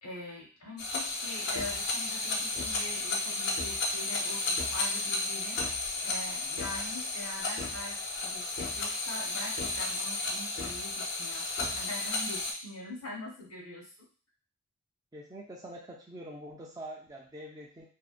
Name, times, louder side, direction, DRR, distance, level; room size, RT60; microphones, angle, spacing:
voice 1, 0.0-13.9, left 1 dB, 85° left, -2 dB, 0.9 m, -43 dB
sound 1, 0.8-12.5, left 3 dB, 50° left, 0.5 m, -33 dB
voice 2, 15.1-17.9, right 1 dB, 15° right, -2 dB, 0.4 m, -45 dB
2.7 x 2.1 x 2.4 m, 0.40 s
head